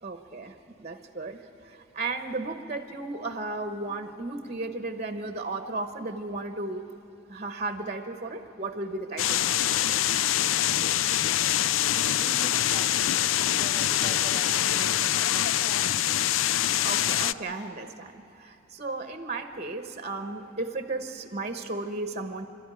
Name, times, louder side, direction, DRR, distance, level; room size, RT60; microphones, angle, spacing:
voice 1, 0.0-6.9 7.3-9.4 16.8-22.5, right 3 dB, 35° right, 7 dB, 1.0 m, -34 dB
sound 1, 9.2-17.3, left 12 dB, 75° left, 0.4 m, -25 dB
voice 2, 12.1-15.4, right 1 dB, 5° right, 5 dB, 1.7 m, -45 dB
27.5 x 13.0 x 9.8 m, 2.9 s
head